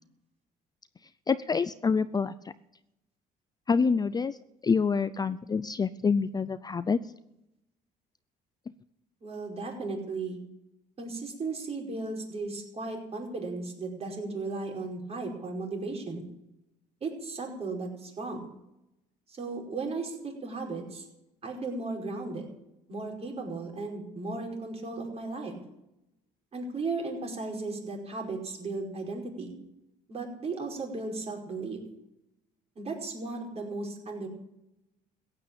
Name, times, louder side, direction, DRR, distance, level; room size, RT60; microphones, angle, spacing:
voice 1, 1.3-2.3 3.7-4.4 4.6-7.0, left 5 dB, 25° left, 14 dB, 0.5 m, -26 dB
voice 2, 9.2-10.4 11.0-16.3 17.0-18.4 19.3-21.1 21.4-22.4 22.9-25.5 26.5-29.5 30.1-31.8 32.7-34.3, right 3 dB, 35° right, 1 dB, 5.1 m, -35 dB
15.5 x 9.0 x 8.6 m, 0.87 s
cardioid pair, 110°, 17 cm